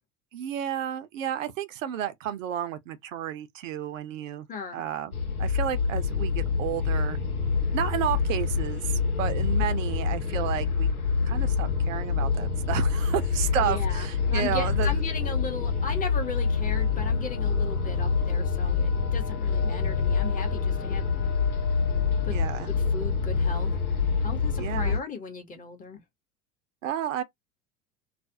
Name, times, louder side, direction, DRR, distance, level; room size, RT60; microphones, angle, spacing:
voice 1, 0.3-4.5 4.7-7.2 7.7-10.9 11.3-15.0 22.3-22.7 24.6-25.0 26.8-27.2, right 10 dB, 65° right, 0.6 m, -31 dB
voice 2, 4.5-4.8 13.6-21.1 22.2-23.7 24.2-26.0, left 4 dB, 20° left, 0.7 m, -37 dB
sound 1, 5.1-25.0, left 5 dB, 85° left, 0.7 m, -26 dB
2.4 x 2.0 x 2.6 m
figure-of-eight pair, 75°, 42 cm